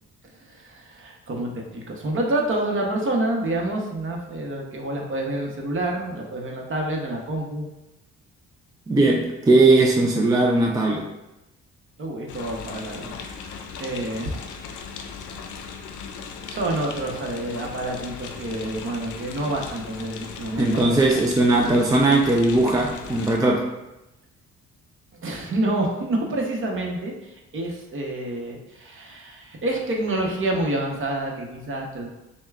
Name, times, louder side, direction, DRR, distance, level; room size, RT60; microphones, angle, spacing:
voice 1, 0.4-7.7 12.0-13.2 13.8-14.5 16.5-21.0 25.2-32.1, right 1 dB, 40° right, 0 dB, 0.9 m, -28 dB
voice 2, 8.9-11.1 20.6-23.7, right 2 dB, 15° right, 0 dB, 0.3 m, -19 dB
sound 1, 12.3-23.4, left 5 dB, 75° left, 0.5 m, -38 dB
6.4 x 2.2 x 2.4 m, 0.96 s
cardioid pair, 90°, 30 cm